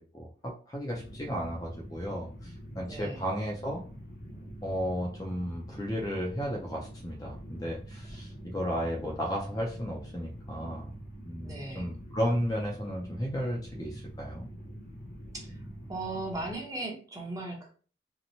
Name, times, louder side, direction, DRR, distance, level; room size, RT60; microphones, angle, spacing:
voice 1, 0.0-3.8 4.6-10.9 11.2-14.5, equal, 20° left, -1 dB, 0.4 m, -34 dB
sound 1, 0.9-16.6, right 1 dB, 55° left, 0.7 m, -45 dB
voice 2, 2.9-3.2 11.4-12.0 15.3-15.6 15.9-17.7, right 2 dB, 20° right, -1 dB, 0.8 m, -37 dB
2.9 x 2.1 x 2.7 m, 0.39 s
head